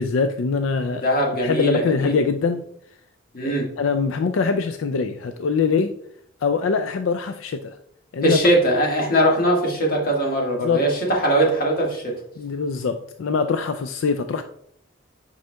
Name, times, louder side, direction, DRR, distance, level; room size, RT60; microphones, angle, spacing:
voice 1, 0.0-1.0 1.4-2.6 3.4-5.9 6.4-7.8 8.1-8.4 10.6-10.9 12.4-14.4, left 5 dB, 85° left, 8 dB, 0.4 m, -23 dB
voice 2, 1.0-2.1 3.3-3.7 8.2-12.1, right 1 dB, 50° left, -1 dB, 1.7 m, -20 dB
7.8 x 5.5 x 2.3 m, 0.68 s
head